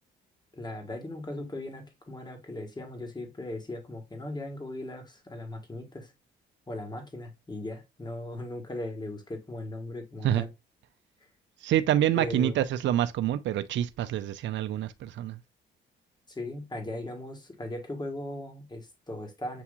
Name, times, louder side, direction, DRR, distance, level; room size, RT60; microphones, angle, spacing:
voice 1, 0.5-6.1 6.7-10.5 12.1-12.6 16.3-19.6, left 1 dB, 20° left, 1.6 m, -38 dB
voice 2, 11.6-15.4, right 11 dB, 70° right, 0.5 m, -27 dB
6.9 x 2.8 x 2.3 m
cardioid pair, 90°, 20 cm